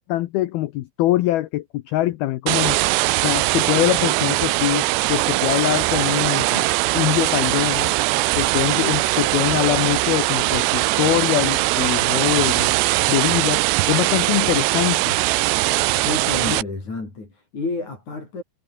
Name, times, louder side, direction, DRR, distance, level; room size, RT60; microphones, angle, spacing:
voice 1, 0.1-2.8 3.2-6.7 6.9-7.9 8.4-12.7 13.1-13.6 13.9-15.2 16.5-16.6, left 16 dB, 85° left, 2.2 m, -23 dB
sound 1, 2.5-16.6, right 19 dB, 80° right, 2.5 m, -21 dB
voice 2, 16.0-18.4, left 3 dB, 35° left, 8.8 m, -30 dB
omnidirectional pair, 5.6 m